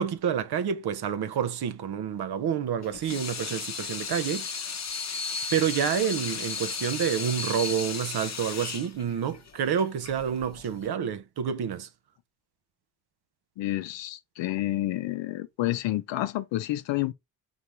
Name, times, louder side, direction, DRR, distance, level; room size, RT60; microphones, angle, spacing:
voice 1, 0.0-4.5 5.5-11.9, right 8 dB, 55° right, 0.7 m, -28 dB
Water tap faucet / Sink (filling or washing), 2.8-10.9, left 5 dB, 35° left, 0.8 m, -35 dB
voice 2, 13.6-17.1, left 15 dB, 65° left, 0.6 m, -29 dB
3.8 x 3.0 x 3.5 m
hypercardioid pair, 45°, 48 cm